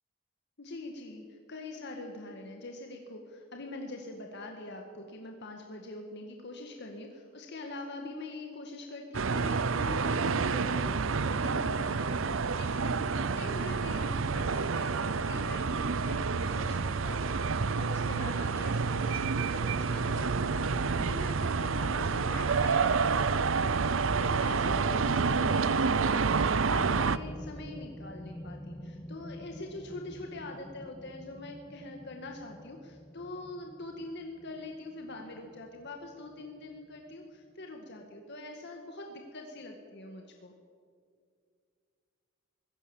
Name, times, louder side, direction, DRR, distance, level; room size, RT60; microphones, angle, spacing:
voice 1, 0.6-40.5, left 2 dB, 60° left, 2 dB, 1.9 m, -44 dB
sound 1, 9.1-27.2, right 5 dB, 70° right, 0.7 m, -29 dB
sound 2, 26.2-37.5, equal, 15° left, 0.8 m, -48 dB
24.5 x 16.5 x 7.2 m, 2.2 s
head